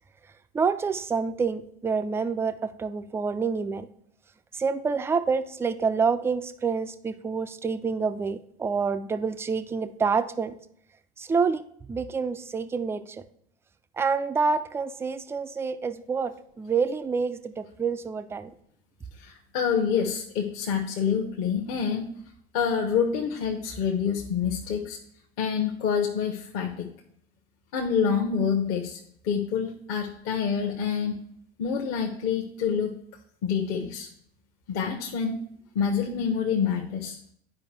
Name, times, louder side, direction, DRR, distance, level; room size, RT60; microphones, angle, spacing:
voice 1, 0.5-3.9 4.5-10.5 11.2-13.2 14.0-18.5, right 5 dB, 10° right, 11 dB, 0.3 m, -27 dB
voice 2, 19.2-22.1 22.5-25.0 25.4-26.9 27.7-29.0 29.2-31.2 31.6-33.0 33.4-34.1 34.7-35.4 35.7-37.2, left 7 dB, 45° left, 1 dB, 0.9 m, -27 dB
10.5 x 5.0 x 3.3 m, 0.67 s
figure-of-eight pair, 70°, 31 cm